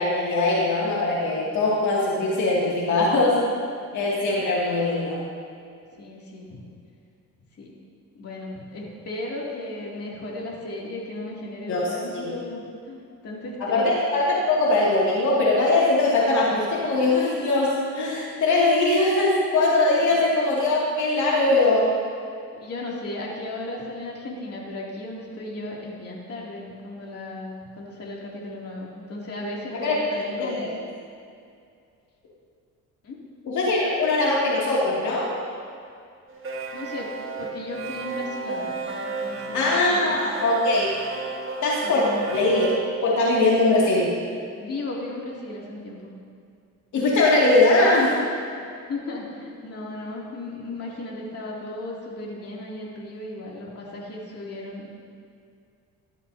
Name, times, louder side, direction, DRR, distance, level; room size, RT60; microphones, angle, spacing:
voice 1, 0.0-3.4 3.9-5.2 11.7-11.8 12.1-12.3 13.6-21.9 29.8-30.0 30.4-30.7 33.4-35.4 39.5-40.9 41.6-42.8 43.0-44.1 46.9-48.2, left 2 dB, 75° left, -5 dB, 2.5 m, -21 dB
voice 2, 6.0-6.6 7.6-7.7 8.1-13.9 20.0-20.2 22.5-30.7 33.0-33.2 36.7-38.8 39.0-40.3 41.8-42.3 44.6-46.1 48.9-54.9, left 2 dB, 50° left, -4 dB, 2.8 m, -35 dB
sound 1, 36.3-42.8, right 3 dB, 40° right, 1.7 m, -33 dB
16.5 x 12.5 x 2.8 m, 2.3 s
cardioid pair, 90°, 30 cm